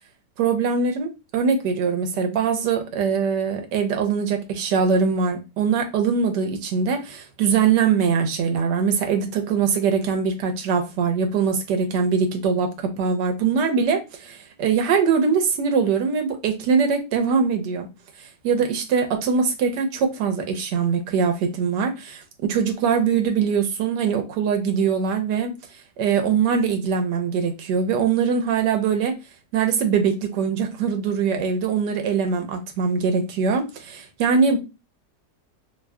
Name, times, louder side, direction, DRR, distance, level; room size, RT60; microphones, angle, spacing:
voice 1, 0.4-17.9 18.4-25.5 26.0-29.1 29.5-34.6, right 6 dB, 80° right, 1.4 m, -22 dB
3.2 x 2.1 x 3.5 m
omnidirectional pair, 1.8 m